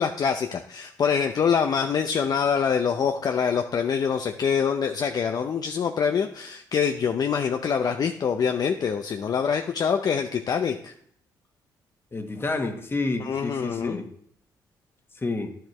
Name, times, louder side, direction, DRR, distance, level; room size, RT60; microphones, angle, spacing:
voice 1, 0.0-10.9 13.2-14.0, left 6 dB, 55° left, 5 dB, 0.6 m, -25 dB
voice 2, 12.1-14.1 15.2-15.5, left 3 dB, 30° left, 5 dB, 1.4 m, -29 dB
10.5 x 7.7 x 3.3 m, 0.63 s
cardioid pair, 75°, 8 cm